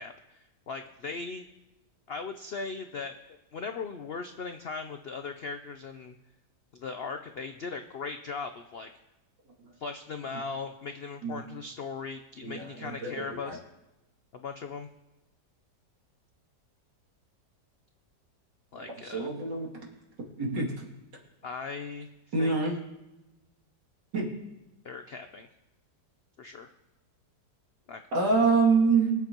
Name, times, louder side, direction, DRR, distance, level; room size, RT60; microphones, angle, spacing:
voice 1, 0.0-1.5 2.1-6.1 6.7-8.9 9.8-13.6 14.3-14.9 18.7-19.3 21.4-22.1 22.4-22.6 24.8-25.5 26.4-26.7 27.9-28.0, left 4 dB, 90° left, 7 dB, 0.5 m, -38 dB
voice 2, 12.4-13.6 18.8-19.7 20.4-20.7 22.3-22.7 24.1-24.3 28.1-29.1, right 4 dB, 90° right, -2 dB, 3.2 m, -26 dB
23.5 x 8.1 x 3.0 m, 0.97 s
omnidirectional pair, 1.9 m